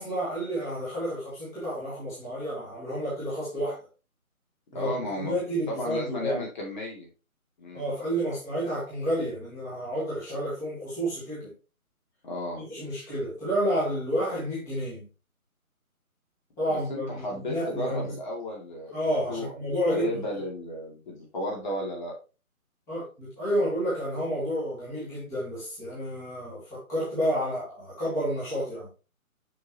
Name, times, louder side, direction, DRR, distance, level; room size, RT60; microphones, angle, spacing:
voice 1, 0.0-3.9 4.7-6.4 7.7-11.5 12.6-15.1 16.6-18.2 18.9-20.2 22.9-28.9, equal, 5° left, -10 dB, 1.9 m, -30 dB
voice 2, 4.7-5.4 5.7-7.1 7.6-7.9 12.2-12.7 16.7-19.0 19.3-19.5 19.9-22.1, left 1 dB, 30° left, -1 dB, 2.4 m, -33 dB
7.5 x 5.8 x 2.9 m, 0.32 s
figure-of-eight pair, 155°, 44 cm